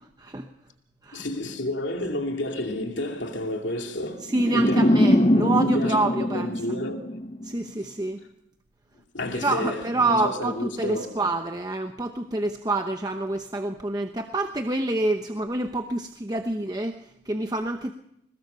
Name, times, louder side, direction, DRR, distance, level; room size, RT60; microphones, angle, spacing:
voice 1, 1.1-4.9 5.6-7.2 9.1-11.2, left 1 dB, 75° left, 2.5 m, -31 dB
voice 2, 4.2-6.5 7.4-8.2 9.3-17.9, right 2 dB, 20° right, 0.9 m, -27 dB
sound 1, 4.3-7.5, left 1 dB, 30° left, 0.7 m, -22 dB
22.0 x 20.0 x 6.8 m
head